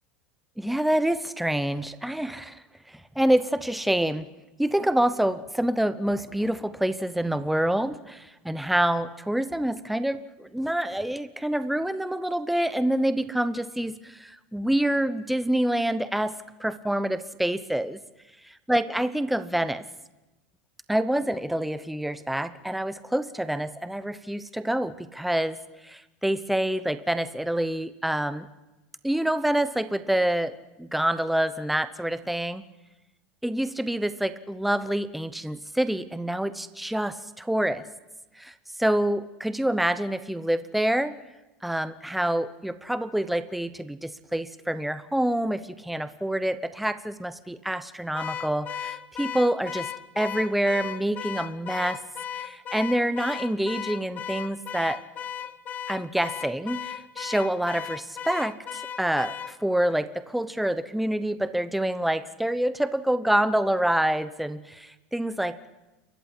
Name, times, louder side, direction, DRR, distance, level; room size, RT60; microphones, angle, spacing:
voice 1, 0.6-4.3 4.6-16.3 16.6-18.0 18.4-19.8 20.9-25.6 25.8-28.5 29.0-32.6 33.4-37.8 38.4-41.2 41.6-49.9 50.2-52.0 52.3-55.0 55.9-65.7, right 1 dB, ahead, 13 dB, 0.8 m, -27 dB
Car / Alarm, 48.1-59.6, left 9 dB, 30° left, 0.9 m, -36 dB
28.5 x 14.5 x 9.7 m, 1.1 s
supercardioid pair, 130°, 5 cm